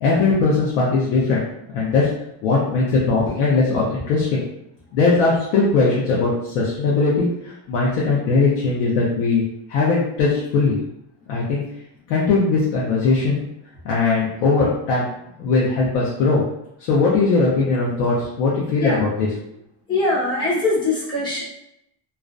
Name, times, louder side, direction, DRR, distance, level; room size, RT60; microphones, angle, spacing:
voice 1, 0.0-1.4 1.7-2.1 2.4-4.4 4.9-9.4 9.7-10.8 11.3-11.6 12.1-13.4 13.8-15.0 15.4-16.4 16.8-19.3, left 3 dB, 80° left, -4 dB, 0.7 m, -19 dB
voice 2, 19.9-21.4, left 2 dB, 10° left, -7 dB, 0.4 m, -22 dB
2.4 x 2.1 x 2.4 m, 0.82 s
cardioid pair, 170°, 46 cm